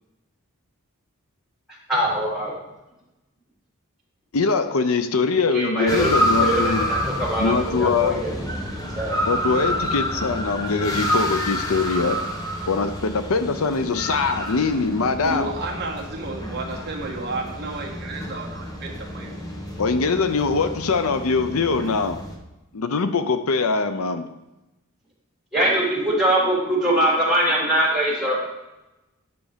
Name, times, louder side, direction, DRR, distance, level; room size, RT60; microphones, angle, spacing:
voice 1, 1.9-2.5 5.5-6.1 6.4-8.3 8.9-9.2 25.5-28.4, right 1 dB, ahead, -6 dB, 3.3 m, -22 dB
voice 2, 4.3-6.9 7.4-8.2 9.2-12.2 12.6-15.5 19.8-22.2 22.7-24.3, left 4 dB, 70° left, 10 dB, 0.6 m, -22 dB
sound 1, 5.9-22.4, equal, 15° left, 1.2 m, -28 dB
voice 3, 15.2-19.3, right 2 dB, 50° right, -1 dB, 1.5 m, -32 dB
9.6 x 6.1 x 5.1 m, 0.97 s
head